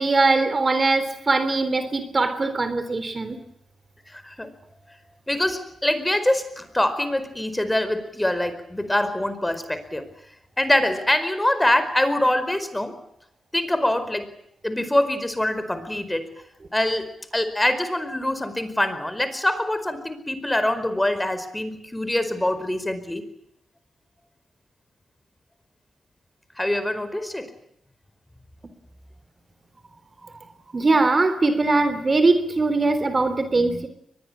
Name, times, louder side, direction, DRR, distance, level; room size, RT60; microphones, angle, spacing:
voice 1, 0.0-3.4 30.7-33.9, right 3 dB, 40° right, 11 dB, 3.6 m, -21 dB
voice 2, 4.1-4.5 5.3-10.1 10.6-12.9 13.5-14.3 14.6-16.3 16.7-23.2 26.6-27.5, left 1 dB, 15° left, 12 dB, 4.8 m, -24 dB
23.0 x 20.5 x 8.8 m, 0.75 s
supercardioid pair, 50°, 0 cm